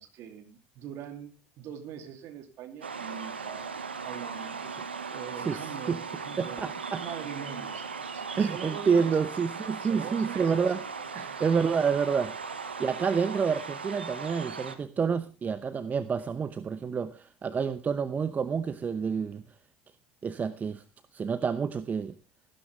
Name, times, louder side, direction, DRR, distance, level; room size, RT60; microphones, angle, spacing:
voice 1, 0.0-4.6 5.1-9.2 9.5-10.7 11.1-11.4, right 8 dB, 55° right, 2.8 m, -43 dB
sound 1, 2.8-14.7, right 5 dB, 90° right, 1.2 m, -38 dB
voice 2, 5.5-6.0 6.4-7.0 8.4-10.8 11.4-19.4 20.2-20.8 21.1-22.1, right 6 dB, 30° right, 0.8 m, -28 dB
15.5 x 12.0 x 3.4 m
figure-of-eight pair, 65°, 6 cm